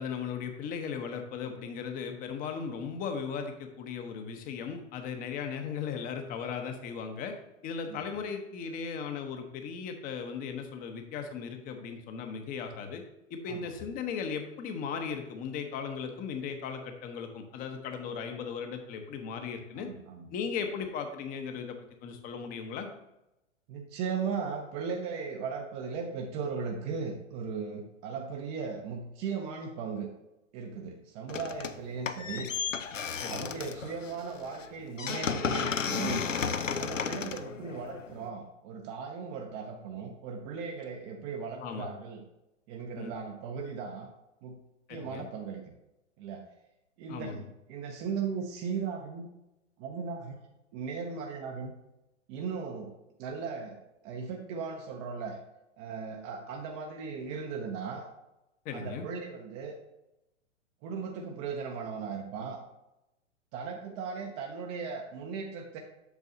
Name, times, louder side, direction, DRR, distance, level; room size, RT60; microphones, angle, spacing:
voice 1, 0.0-7.3 7.6-13.0 13.3-19.9 20.3-22.9 33.2-33.5 41.6-41.9 43.0-43.1 44.9-45.3 47.1-47.4 58.6-59.1, left 6 dB, 25° left, 6 dB, 0.9 m, -37 dB
voice 2, 19.8-20.3 23.7-30.1 30.5-32.5 33.3-36.3 36.8-42.2 42.7-44.1 44.4-44.6 44.9-45.6 46.2-46.4 47.0-49.3 49.8-50.4 50.7-51.7 52.3-52.9 53.2-53.7 54.0-55.4 55.8-58.1 58.7-59.8 60.8-62.6 63.5-65.8, right 5 dB, 25° right, 1 dB, 0.7 m, -37 dB
sound 1, 31.3-31.8 32.1-38.3, left 6 dB, 85° left, 0.6 m, -34 dB
8.2 x 6.4 x 2.7 m, 0.91 s
figure-of-eight pair, 110°, 37 cm